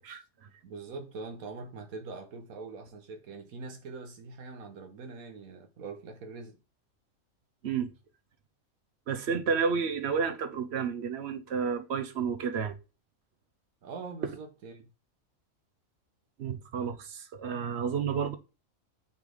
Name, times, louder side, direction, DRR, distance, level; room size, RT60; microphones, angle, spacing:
voice 1, 0.0-0.5 7.6-7.9 9.1-12.7 16.4-18.4, right 6 dB, 55° right, 1.1 m, -31 dB
voice 2, 0.6-6.6 13.8-14.9, right 4 dB, 85° right, 1.4 m, -43 dB
6.0 x 3.9 x 5.0 m
omnidirectional pair, 1.4 m